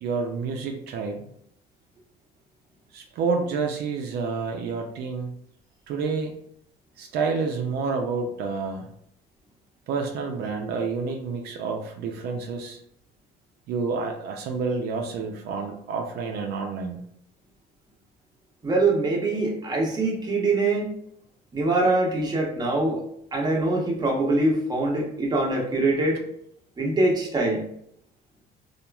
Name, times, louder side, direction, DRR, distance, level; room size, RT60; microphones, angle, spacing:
voice 1, 0.0-1.3 2.9-5.3 5.9-6.3 7.0-8.9 9.9-12.8 13.7-17.0, right 4 dB, 75° right, 2 dB, 0.4 m, -29 dB
voice 2, 18.6-20.9 21.5-23.0 23.3-26.2 26.8-27.6, right 2 dB, 25° right, -2 dB, 0.8 m, -23 dB
2.9 x 2.4 x 2.2 m, 0.71 s
cardioid pair, 110°, 17 cm